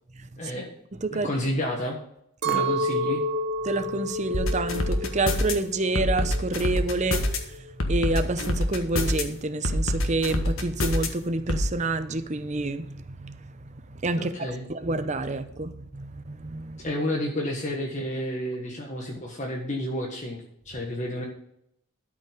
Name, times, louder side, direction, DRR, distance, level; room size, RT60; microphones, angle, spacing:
voice 1, 0.4-0.8 1.1-2.0 2.4-3.2 14.2-14.6 16.8-21.3, left 1 dB, 35° left, 1.4 m, -30 dB
Chink clink, 2.4-6.8 7.0-7.8, equal, 55° right, 1.0 m, -30 dB
voice 2, 3.6-16.9, right 2 dB, 35° right, 0.7 m, -29 dB
sound 1, 4.3-5.5 6.0-7.4 7.8-9.2 9.6-11.1 11.5-11.7, left 1 dB, 75° left, 1.5 m, -25 dB
12.5 x 5.6 x 5.2 m
head